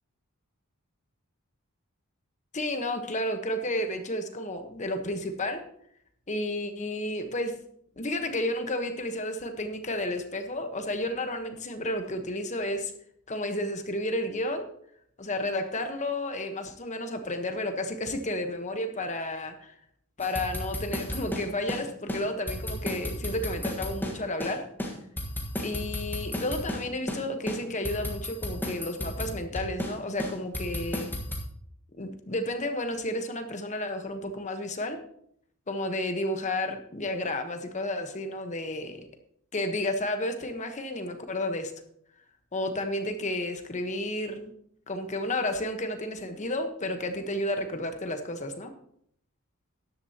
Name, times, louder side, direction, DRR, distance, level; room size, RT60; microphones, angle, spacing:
voice 1, 2.5-5.6 6.3-7.5 8.0-12.9 13.3-14.7 15.2-19.7 20.2-24.6 25.6-31.1 31.9-35.0 35.7-39.0 39.5-41.7 42.5-44.5 44.9-48.7, left 1 dB, 35° left, 6 dB, 1.1 m, -32 dB
sound 1, 20.2-21.8 22.1-22.2 22.5-24.5 24.8-26.8 27.1-27.2 27.5-29.9 30.2-31.4, equal, 10° left, 1.5 m, -33 dB
13.0 x 11.0 x 2.9 m, 0.69 s
head